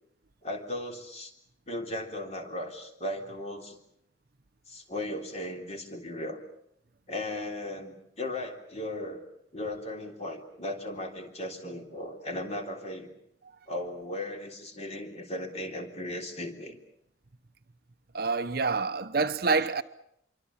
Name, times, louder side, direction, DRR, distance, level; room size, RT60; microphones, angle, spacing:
voice 1, 0.4-1.3 1.7-3.8 4.7-6.4 7.1-9.3 9.5-13.1 13.7-16.8, left 1 dB, 35° left, 3.6 m, -36 dB
voice 2, 18.1-19.8, right 4 dB, 50° right, 0.9 m, -27 dB
26.5 x 24.0 x 7.3 m
head